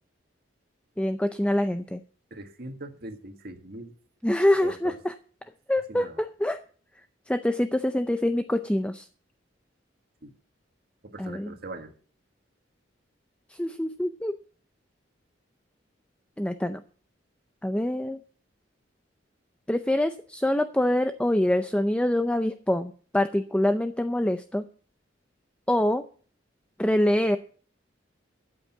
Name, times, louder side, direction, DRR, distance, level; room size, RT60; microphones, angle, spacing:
voice 1, 1.0-2.0 4.2-4.9 5.7-6.6 7.3-9.1 11.2-11.5 13.5-14.4 16.4-16.8 17.6-18.2 19.7-24.6 25.7-26.0 26.8-27.4, left 1 dB, 5° left, 9 dB, 0.5 m, -25 dB
voice 2, 2.3-3.9 4.6-5.0 5.9-6.2 10.2-10.3 11.0-11.9, right 2 dB, 55° right, 6 dB, 1.7 m, -41 dB
13.5 x 8.2 x 5.9 m, 0.43 s
head